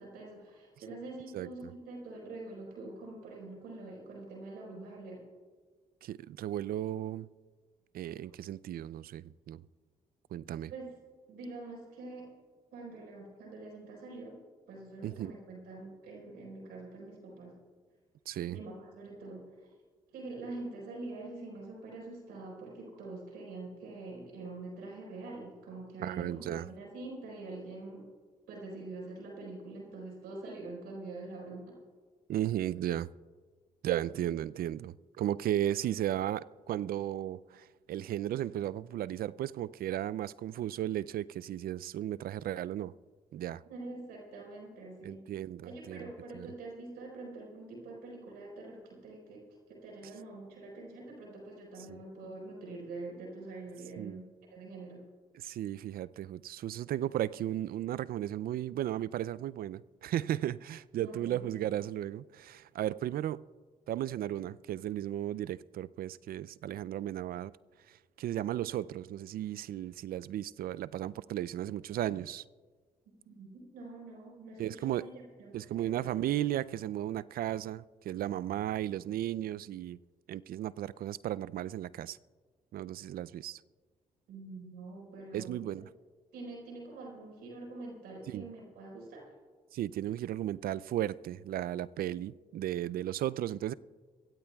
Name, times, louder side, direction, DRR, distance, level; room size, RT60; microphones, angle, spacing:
voice 1, 0.0-5.2 10.7-11.0 11.3-12.3 12.7-14.4 14.7-17.5 18.5-19.7 20.1-28.0 28.5-31.7 43.6-45.2 45.6-55.0 61.0-61.5 73.2-76.1 84.3-85.6 86.3-89.2, right 2 dB, 85° right, 4.6 m, -45 dB
voice 2, 6.0-7.3 7.9-9.6 10.3-10.7 15.0-15.3 18.3-18.6 26.0-26.7 32.3-33.1 33.8-42.9 43.3-43.6 45.0-46.1 46.3-46.5 51.9-52.0 54.0-54.2 55.3-63.4 63.9-67.5 67.9-72.4 74.6-75.1 75.5-80.0 80.3-82.2 82.7-83.6 85.3-85.9 88.3-88.5 89.7-93.7, right 12 dB, 70° right, 0.4 m, -35 dB
23.0 x 16.5 x 2.3 m
supercardioid pair, 50°, 16 cm